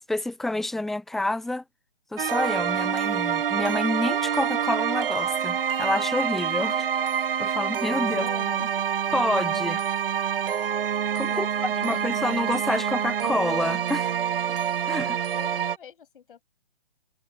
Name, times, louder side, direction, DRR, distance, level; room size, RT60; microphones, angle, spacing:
voice 1, 0.1-1.6 2.1-6.8 7.4-8.3 9.1-9.8 11.1-14.1 14.9-15.2, left 2 dB, ahead, 0.6 m, -28 dB
sound 1, 2.2-15.8, right 8 dB, 60° right, 0.8 m, -26 dB
voice 2, 8.2-8.7 11.3-12.0 15.3-16.4, left 8 dB, 55° left, 7.3 m, -43 dB
figure-of-eight pair, 135°, 31 cm